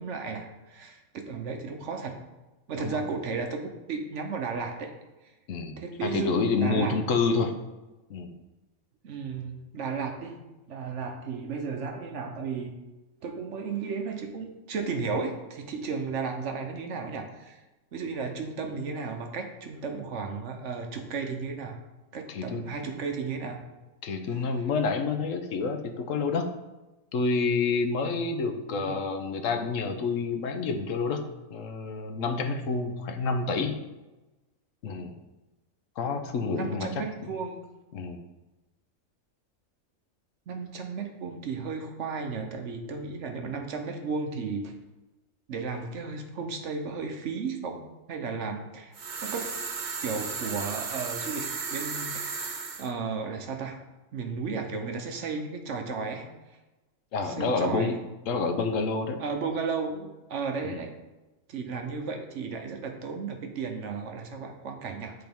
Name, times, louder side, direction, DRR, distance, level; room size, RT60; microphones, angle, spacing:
voice 1, 0.0-2.2 2.7-4.9 5.8-6.3 6.6-7.0 9.0-10.4 10.7-12.8 13.2-17.6 17.9-21.8 22.1-23.6 28.7-29.0 36.5-37.6 40.5-44.7 45.5-47.8 48.1-48.9 49.2-49.5 50.0-52.2 52.8-53.8 54.1-56.6 57.2-58.0 59.2-60.9 61.5-65.1, right 5 dB, 65° right, 4 dB, 1.0 m, -34 dB
voice 2, 5.5-7.5 8.1-8.3 22.3-22.6 24.0-26.5 27.1-31.2 31.5-33.8 34.8-35.1 36.0-37.0 37.9-38.2 57.1-58.0 58.3-59.2 60.6-60.8, left 4 dB, 75° left, 6 dB, 1.1 m, -28 dB
sound 1, 48.9-52.9, right 5 dB, 45° right, 0.7 m, -34 dB
10.0 x 3.9 x 3.5 m, 1.1 s
omnidirectional pair, 1.4 m